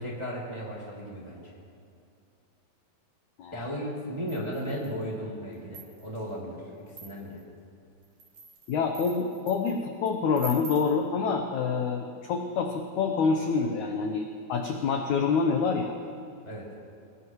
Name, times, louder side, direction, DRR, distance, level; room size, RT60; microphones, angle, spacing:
voice 1, 0.0-1.6 3.5-7.4 16.4-16.7, equal, 10° right, -4 dB, 1.6 m, -36 dB
voice 2, 3.4-3.7 8.7-16.0, left 5 dB, 80° left, 4 dB, 1.7 m, -27 dB
sound 1, 4.3-5.0 5.5-6.2 6.9-7.4 8.0-9.8 10.3-11.0, right 4 dB, 70° right, 4.2 m, -45 dB
23.0 x 20.0 x 3.1 m, 2.6 s
omnidirectional pair, 4.5 m